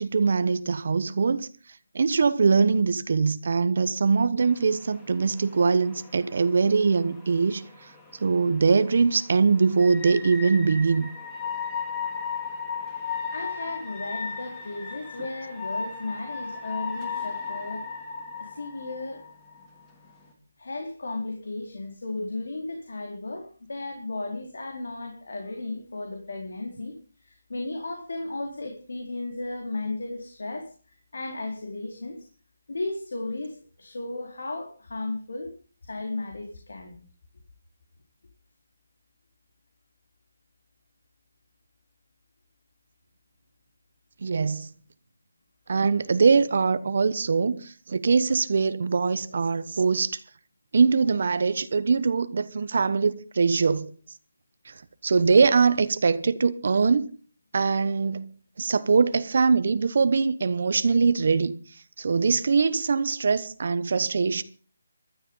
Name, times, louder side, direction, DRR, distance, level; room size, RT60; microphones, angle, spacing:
voice 1, 0.0-1.5 1.9-7.9 8.2-11.1 44.2-44.7 45.7-50.2 50.7-53.9 54.6-54.7 55.0-57.1 57.5-58.3 58.6-61.5 62.0-64.4, right 4 dB, 50° right, 1.0 m, -22 dB
sound 1, 4.4-20.3, left 5 dB, 10° left, 2.9 m, -37 dB
voice 2, 13.3-17.9 18.4-19.2 20.6-30.7 31.1-32.3 32.7-35.6 35.8-36.9, left 2 dB, 75° left, 4.3 m, -35 dB
15.5 x 13.0 x 5.6 m
hypercardioid pair, 175°, 0 cm